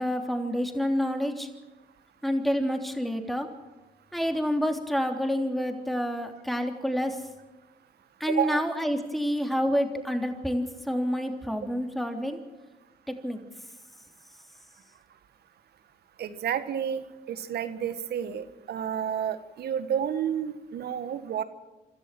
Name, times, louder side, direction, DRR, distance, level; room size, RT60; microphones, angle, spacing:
voice 1, 0.0-1.5 2.2-3.5 4.1-7.2 8.2-12.4 13.2-13.4, equal, ahead, 4 dB, 3.3 m, -28 dB
voice 2, 8.3-8.6 16.2-21.4, right 9 dB, 65° right, 11 dB, 1.5 m, -30 dB
26.0 x 13.0 x 7.7 m, 1.2 s
supercardioid pair, 60°, 18 cm